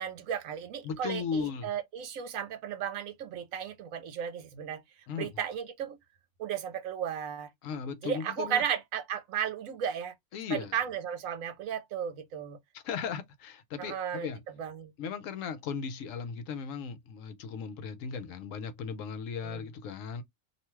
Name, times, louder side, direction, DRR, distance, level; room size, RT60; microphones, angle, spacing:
voice 1, 0.0-4.8 5.1-6.0 6.4-7.5 8.0-10.1 10.5-12.6 13.8-14.3 14.6-14.9 19.4-19.6, right 9 dB, 75° right, 1.0 m, -34 dB
voice 2, 0.8-1.7 5.1-5.3 7.6-8.6 10.3-10.7 12.7-14.4 15.0-20.2, left 6 dB, 75° left, 1.0 m, -36 dB
2.7 x 2.2 x 2.9 m
omnidirectional pair, 1.4 m